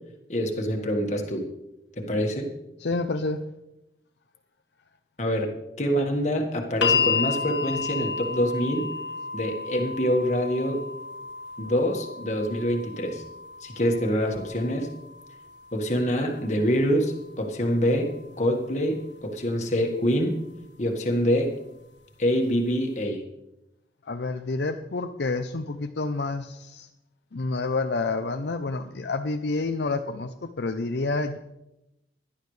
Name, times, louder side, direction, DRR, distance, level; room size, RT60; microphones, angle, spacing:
voice 1, 0.3-1.4 2.0-2.5 5.2-5.5 5.8-8.9 9.3-10.8 11.6-13.2 13.6-14.9 15.7-20.4 20.8-21.5 22.2-23.2, equal, 40° left, 2 dB, 1.7 m, -25 dB
voice 2, 2.8-3.5 24.1-26.9 27.3-31.4, left 3 dB, 70° left, 6 dB, 0.6 m, -29 dB
sound 1, 6.8-18.9 20.0-20.1, left 5 dB, 90° left, 1.6 m, -33 dB
17.5 x 11.5 x 3.3 m, 0.90 s
head